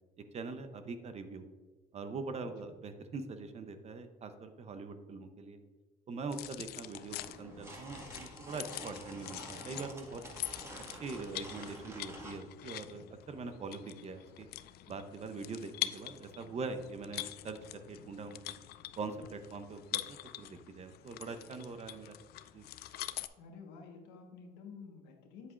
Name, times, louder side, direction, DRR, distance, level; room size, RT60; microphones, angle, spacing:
voice 1, 0.2-1.4 1.9-5.6 6.1-10.2 11.0-14.5 14.9-18.6 19.0-22.2 22.5-22.7, right 4 dB, 40° right, 9 dB, 0.7 m, -43 dB
voice 2, 2.4-2.7 23.4-25.5, left 5 dB, 90° left, 2 dB, 1.3 m, -51 dB
sound 1, 6.3-23.3, left 15 dB, 70° left, 0.4 m, -45 dB
sound 2, 7.2-12.4, right 1 dB, 15° right, 1.7 m, -49 dB
8.4 x 7.6 x 2.5 m, 1.3 s
cardioid pair, 110°, 17 cm